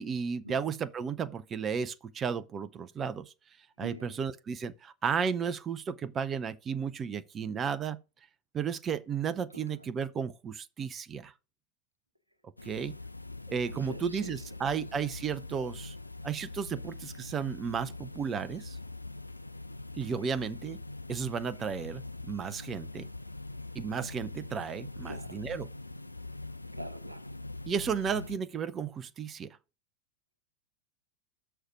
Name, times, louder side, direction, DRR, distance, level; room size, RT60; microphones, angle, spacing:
voice 1, 0.0-3.3 3.8-8.0 8.5-11.3 12.6-12.9 13.5-16.0 16.2-18.8 20.0-20.8 21.1-23.1 23.7-25.7 27.7-29.6, right 6 dB, 25° right, 0.5 m, -33 dB
voice 2, 3.8-4.1 9.5-9.6 13.7-14.3 25.1-25.4 26.7-27.3, equal, 85° right, 0.8 m, -44 dB
sound 1, 12.6-28.4, left 2 dB, 85° left, 0.4 m, -43 dB
6.4 x 4.4 x 6.1 m
figure-of-eight pair, 90°, 0 cm